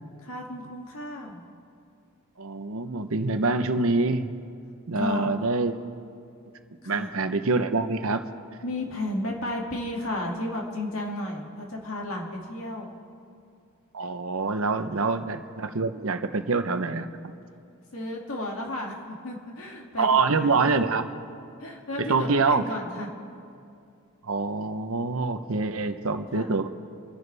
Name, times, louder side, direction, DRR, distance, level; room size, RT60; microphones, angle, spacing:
voice 1, 0.2-1.4 4.9-5.4 6.8-7.1 8.6-12.9 15.0-15.2 17.9-19.0 19.2-20.1 20.4-20.8 21.6-23.1 26.3-26.6, left 1 dB, 70° left, -1 dB, 2.3 m, -33 dB
voice 2, 2.4-4.3 4.9-5.7 6.9-8.2 13.9-17.1 20.0-21.1 22.0-22.7 24.2-26.7, right 3 dB, 70° right, 8 dB, 0.9 m, -25 dB
29.5 x 11.0 x 3.4 m, 2.5 s
head